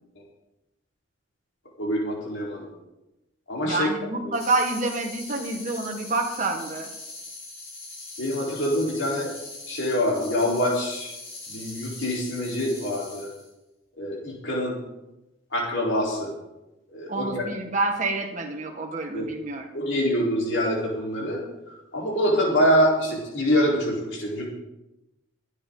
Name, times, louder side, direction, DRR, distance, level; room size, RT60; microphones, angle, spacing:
voice 1, 1.8-2.7 3.5-3.9 8.2-9.3 9.7-11.1 11.5-13.3 14.0-14.8 15.5-16.3 16.9-17.5 19.1-19.3 19.7-21.4 21.9-24.4, equal, 65° left, -3 dB, 4.1 m, -25 dB
voice 2, 3.6-6.9 17.1-19.7, right 3 dB, 35° right, 2 dB, 1.7 m, -28 dB
sound 1, 4.3-13.5, left 2 dB, 50° left, 5.4 m, -41 dB
23.0 x 9.5 x 3.9 m, 0.97 s
head